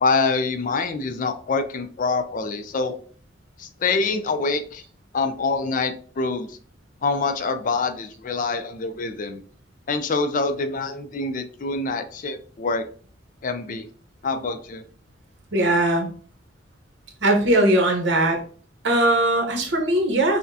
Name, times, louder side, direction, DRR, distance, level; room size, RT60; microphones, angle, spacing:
voice 1, 0.0-3.0 3.6-4.8 5.1-6.6 7.0-9.4 9.9-12.8 13.4-13.9 14.2-14.8, left 4 dB, 45° left, 9 dB, 0.4 m, -25 dB
voice 2, 15.5-16.1 17.2-18.4 18.8-20.4, right 1 dB, 65° right, 2 dB, 1.0 m, -20 dB
5.8 x 2.2 x 2.7 m, 0.44 s
head